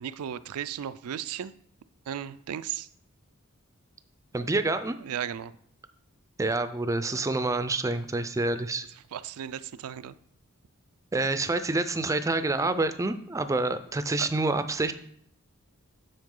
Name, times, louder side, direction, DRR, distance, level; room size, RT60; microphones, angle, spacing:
voice 1, 0.0-1.5 2.1-2.9 5.0-5.5 9.1-10.2 14.2-14.3, right 9 dB, 85° right, 14 dB, 0.4 m, -35 dB
voice 2, 4.3-5.0 6.4-8.9 11.1-14.9, right 2 dB, 15° right, 11 dB, 0.4 m, -27 dB
9.2 x 4.5 x 3.8 m, 0.65 s
head